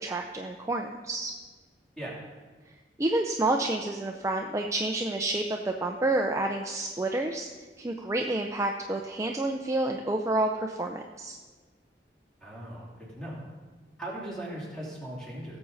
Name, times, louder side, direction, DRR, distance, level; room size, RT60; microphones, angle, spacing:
voice 1, 0.0-1.3 3.0-7.5 7.8-11.4, right 2 dB, 15° right, 2 dB, 0.5 m, -29 dB
voice 2, 12.4-13.4 14.0-15.6, right 1 dB, 5° left, -5 dB, 3.0 m, -38 dB
17.0 x 7.1 x 4.0 m, 1.4 s
head